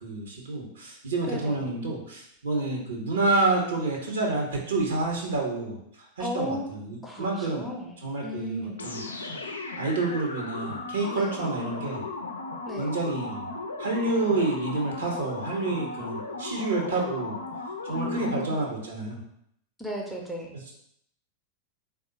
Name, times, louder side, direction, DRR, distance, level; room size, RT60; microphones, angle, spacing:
voice 1, 0.0-5.8 6.2-7.7 8.0-9.3 9.8-12.0 12.8-17.4 17.8-19.2 20.5-20.7, right 3 dB, 65° right, 0 dB, 0.9 m, -29 dB
voice 2, 1.3-1.6 6.2-6.7 7.0-8.9 11.1-11.4 12.7-13.0 17.9-18.6 19.8-20.5, left 1 dB, 5° left, -1 dB, 0.6 m, -35 dB
sound 1, 8.8-18.6, left 3 dB, 75° left, 0.4 m, -36 dB
3.6 x 2.3 x 3.9 m, 0.71 s
figure-of-eight pair, 90°, 0 cm